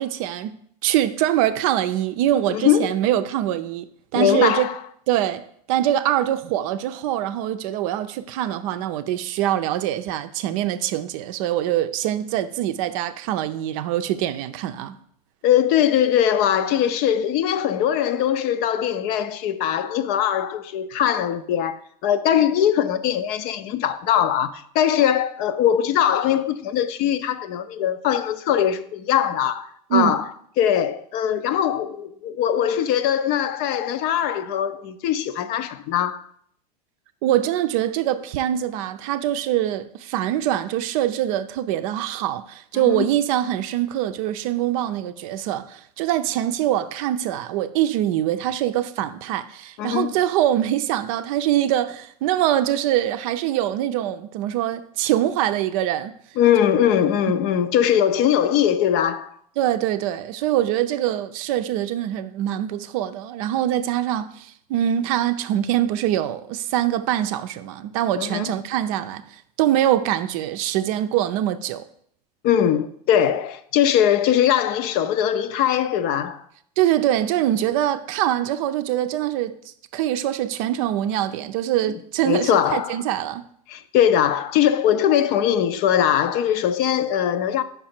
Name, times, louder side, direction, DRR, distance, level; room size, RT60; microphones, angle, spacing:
voice 1, 0.0-4.7 5.1-15.0 29.9-30.2 37.2-56.2 56.8-56.9 59.6-71.8 76.8-79.6 79.9-83.5, right 12 dB, 55° right, 0.5 m, -23 dB
voice 2, 2.5-2.9 4.1-4.7 15.4-30.2 30.6-36.2 42.9-43.1 49.8-50.2 56.4-59.4 68.1-68.5 72.4-76.4 82.2-83.0 83.7-87.6, left 10 dB, 50° left, 0.5 m, -21 dB
5.3 x 4.8 x 4.4 m
hypercardioid pair, 100°, 21 cm